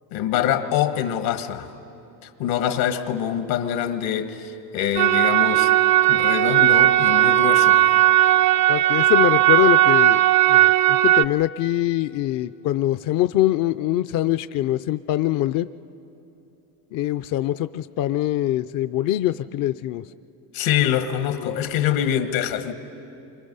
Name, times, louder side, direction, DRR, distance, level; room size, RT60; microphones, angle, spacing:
voice 1, 0.1-1.7 2.2-5.8 6.1-7.8 20.5-22.7, left 10 dB, 80° left, 8 dB, 1.6 m, -24 dB
sound 1, 5.0-11.2, right 14 dB, 40° right, 0.5 m, -17 dB
voice 2, 8.7-10.2 10.5-15.7 16.9-20.0 21.4-21.8, left 14 dB, 45° left, 12 dB, 0.4 m, -23 dB
28.5 x 24.0 x 5.5 m, 2.8 s
supercardioid pair, 105°, 47 cm